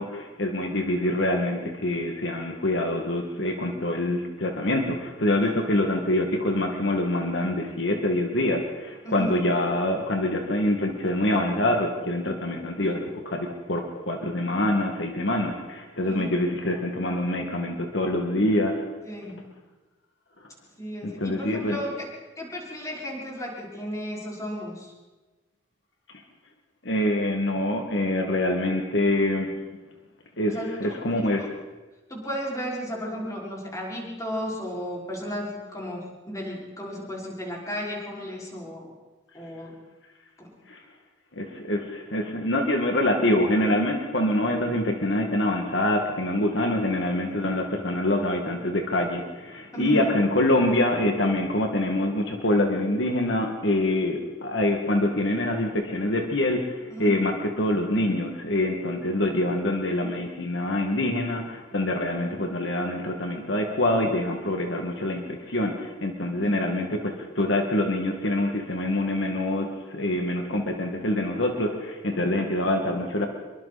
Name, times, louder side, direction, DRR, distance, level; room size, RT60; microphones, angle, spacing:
voice 1, 0.0-18.9 21.0-21.8 26.8-29.5 30.4-31.5 40.7-40.8 41.4-73.3, left 1 dB, 65° left, 2 dB, 2.2 m, -25 dB
voice 2, 9.0-9.4 16.0-16.3 19.1-19.4 20.8-22.1 22.4-24.9 30.5-31.5 32.1-38.9 39.3-39.8 40.4-40.5 49.7-50.1 56.9-57.1 66.4-66.7, equal, 15° left, -3 dB, 5.6 m, -34 dB
26.0 x 23.5 x 4.3 m, 1.2 s
head